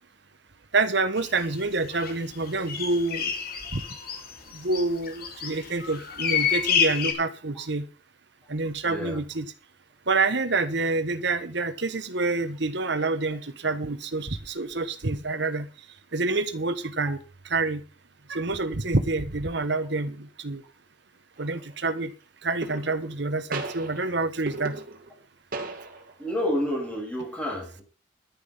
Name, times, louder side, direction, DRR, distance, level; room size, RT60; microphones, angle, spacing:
voice 1, 0.7-3.3 3.7-3.8 4.5-7.9 8.5-9.5 10.1-15.7 16.1-17.2 17.5-17.8 18.3-20.6 21.4-22.1 22.4-24.8, right 3 dB, 65° right, 11 dB, 1.4 m, -27 dB
sound 1, 1.2-1.3 1.9-2.1 2.5-7.1, left 7 dB, 55° left, 2.7 m, -28 dB
voice 2, 8.8-9.2 26.2-27.8, equal, 5° left, -1 dB, 6.4 m, -29 dB
sound 2, 21.4-21.7 22.6-23.2 23.5-25.2 25.5-26.3, right 3 dB, 50° right, 2.2 m, -37 dB
11.0 x 10.0 x 5.7 m, 0.34 s
head